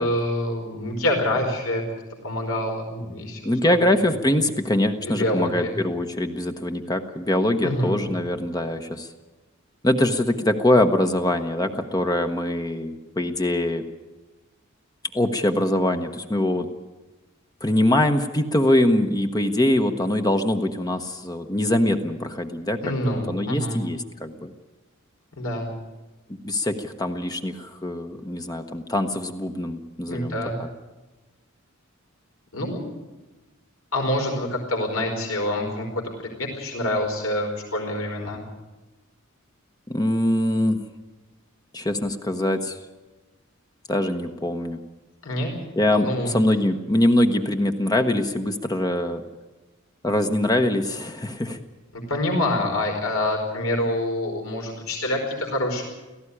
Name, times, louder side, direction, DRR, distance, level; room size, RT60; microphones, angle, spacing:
voice 1, 0.0-1.8 2.2-3.8 5.0-5.7 7.6-8.0 22.8-23.8 25.4-25.7 30.1-30.6 32.5-32.8 33.9-38.4 45.2-45.5 45.9-46.4 51.9-55.8, left 1 dB, 75° left, 2 dB, 5.0 m, -26 dB
voice 2, 3.4-9.1 9.8-13.8 15.1-16.7 17.6-24.5 26.4-30.7 39.9-40.8 41.7-42.8 43.9-44.8 45.8-49.2 50.0-51.6, left 1 dB, 20° left, 6 dB, 1.0 m, -23 dB
17.5 x 15.0 x 9.9 m, 1.1 s
head